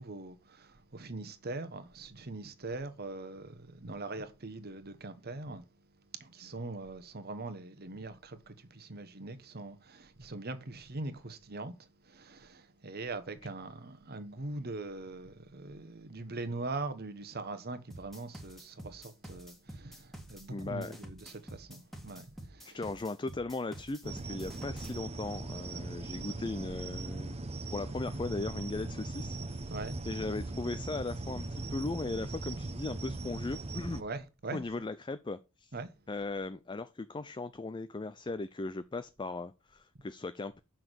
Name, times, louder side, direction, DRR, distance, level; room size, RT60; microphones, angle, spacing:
voice 1, 0.0-5.6 6.1-22.8 29.7-30.0 34.0-34.6 35.7-35.9, right 2 dB, 45° right, 1.1 m, -42 dB
sound 1, 17.9-25.0, right 1 dB, ahead, 1.5 m, -48 dB
voice 2, 20.5-21.0 22.6-29.6 30.1-34.0 34.5-35.7 36.1-40.6, left 3 dB, 20° left, 0.4 m, -38 dB
sound 2, 24.0-34.0, right 2 dB, 30° right, 0.8 m, -39 dB
7.1 x 5.9 x 6.2 m
head